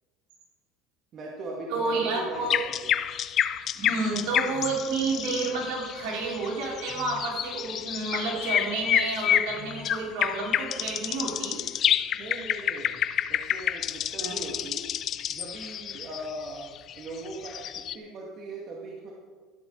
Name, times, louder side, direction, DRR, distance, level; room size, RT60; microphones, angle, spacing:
voice 1, 1.1-3.0 12.1-13.0 13.3-14.9 15.3-16.7 17.0-19.1, right 2 dB, 45° right, -2 dB, 2.1 m, -39 dB
voice 2, 1.7-2.6 3.7-11.6 14.2-14.4, right 3 dB, 70° right, -3 dB, 4.6 m, -30 dB
sound 1, 2.3-18.0, left 10 dB, 45° left, 0.5 m, -29 dB
13.0 x 12.0 x 4.0 m, 1.5 s
supercardioid pair, 115°, 0 cm